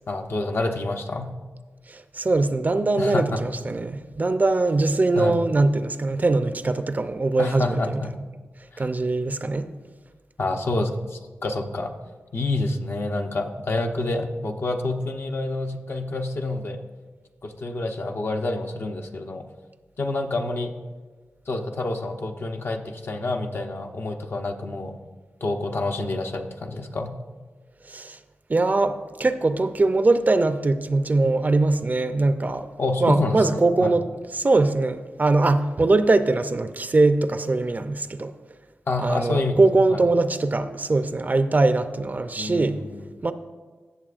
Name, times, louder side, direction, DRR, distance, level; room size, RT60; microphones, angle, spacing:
voice 1, 0.1-1.3 3.0-3.4 5.1-5.4 7.4-8.1 8.7-8.8 10.4-11.9 12.3-16.8 17.4-19.4 20.0-20.7 21.5-25.0 25.4-27.2 32.8-33.5 33.8-33.9 38.9-39.6 39.9-40.0 42.4-43.1, left 2 dB, 60° left, 0.8 m, -28 dB
voice 2, 1.9-8.0 8.8-9.7 27.9-28.2 28.5-32.7 33.0-34.1 34.3-38.3 39.0-42.8 43.2-43.3, right 2 dB, 40° right, 0.5 m, -22 dB
16.5 x 6.8 x 2.5 m
cardioid pair, 65°, 4 cm